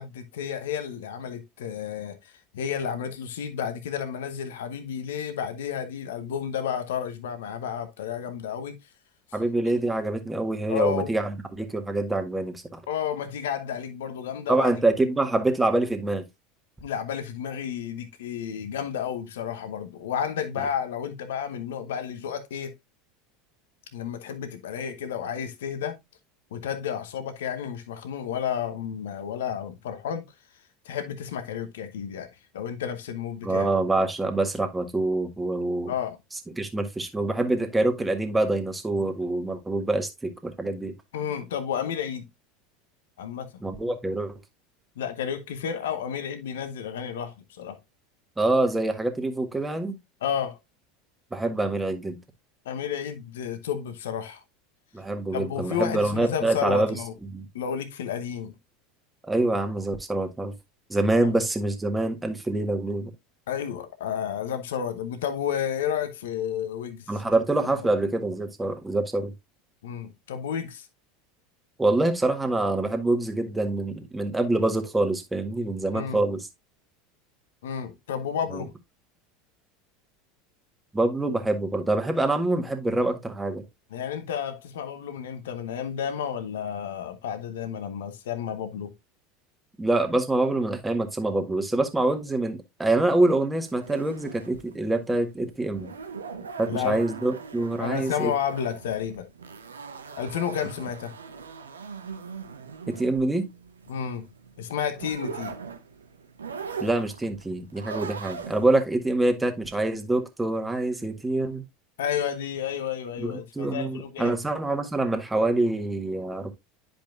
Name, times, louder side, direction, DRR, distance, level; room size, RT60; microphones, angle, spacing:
voice 1, 0.0-8.8 10.7-11.1 12.9-14.7 16.8-22.7 23.9-26.0 26.5-30.3 30.8-32.3 32.5-33.7 35.9-36.2 41.1-42.3 43.2-43.5 45.0-47.8 50.2-50.6 52.6-54.4 55.3-57.1 57.5-58.5 61.2-61.3 63.5-67.1 69.8-70.9 75.9-76.2 77.6-78.7 83.9-88.9 96.7-97.0 97.8-99.3 100.2-101.1 103.9-104.3 104.6-105.5 112.0-114.4, left 8 dB, 75° left, 0.9 m, -31 dB
voice 2, 9.3-12.8 14.5-16.3 33.4-35.9 36.6-40.9 43.6-44.4 48.4-50.0 51.3-52.2 54.9-57.0 57.3-57.5 59.2-60.5 60.9-63.1 67.1-69.3 71.8-76.5 78.5-78.6 80.9-83.6 89.8-95.9 96.6-98.3 102.9-103.5 106.8-111.6 113.2-116.5, right 2 dB, 10° right, 1.6 m, -25 dB
sound 1, 93.7-108.8, right 5 dB, 85° right, 0.8 m, -41 dB
10.0 x 5.3 x 2.5 m
hypercardioid pair, 80°, 0 cm